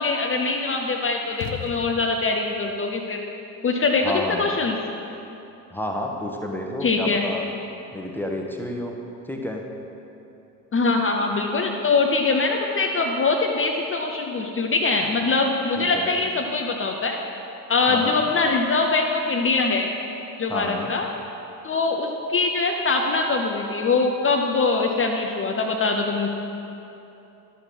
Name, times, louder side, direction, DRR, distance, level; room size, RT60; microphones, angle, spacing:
voice 1, 0.0-3.2 3.6-4.8 6.8-7.2 10.7-17.2 17.7-19.9 20.4-21.1 21.6-26.3, left 3 dB, 25° left, 2 dB, 0.8 m, -23 dB
sound 1, 1.3-2.4, left 7 dB, 70° left, 1.0 m, -36 dB
voice 2, 4.0-4.5 5.7-7.4 7.9-8.9 9.3-9.6 15.8-16.2 17.9-18.2 20.5-20.9, left 1 dB, 5° left, 0 dB, 1.2 m, -30 dB
11.5 x 7.1 x 6.1 m, 2.9 s
figure-of-eight pair, 60°, 50 cm